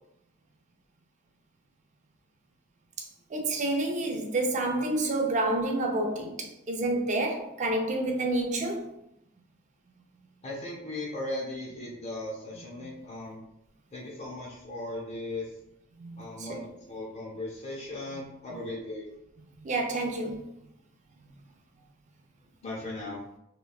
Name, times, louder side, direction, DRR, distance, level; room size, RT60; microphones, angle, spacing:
voice 1, 3.3-8.9 12.8-12.9 16.0-16.6 19.6-20.4, right 2 dB, 35° right, 0.4 m, -29 dB
voice 2, 10.4-13.4 13.9-15.5 16.2-19.1 22.6-23.2, left 1 dB, 35° left, 0.7 m, -37 dB
2.9 x 2.2 x 2.3 m
head